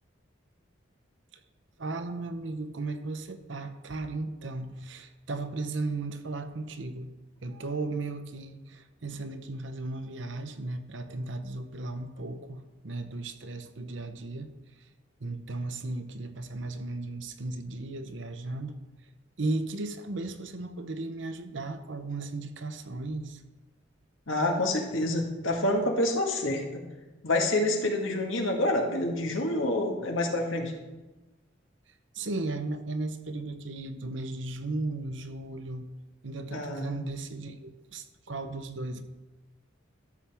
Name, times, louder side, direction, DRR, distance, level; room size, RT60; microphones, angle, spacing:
voice 1, 1.8-7.1 7.4-14.5 15.2-18.7 19.4-23.4 32.1-35.9 36.2-39.0, right 2 dB, 70° right, 8 dB, 0.8 m, -35 dB
voice 2, 24.3-26.8 27.2-30.7 36.5-36.9, left 1 dB, 85° left, 2 dB, 1.6 m, -27 dB
13.0 x 7.2 x 3.5 m, 1.1 s
head